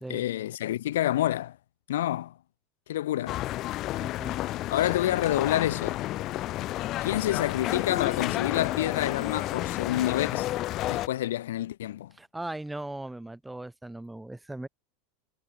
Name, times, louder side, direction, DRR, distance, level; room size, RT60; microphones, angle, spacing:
voice 1, 0.1-1.6 1.9-2.3 2.9-3.4 4.7-6.0 7.0-10.5 10.8-12.1, left 13 dB, 90° left, 0.9 m, -28 dB
sound 1, 3.3-11.1, left 15 dB, 45° left, 0.9 m, -31 dB
voice 2, 4.0-4.4 4.8-4.9 12.1-14.7, right 2 dB, 5° right, 1.2 m, -39 dB
supercardioid pair, 125°, 0 cm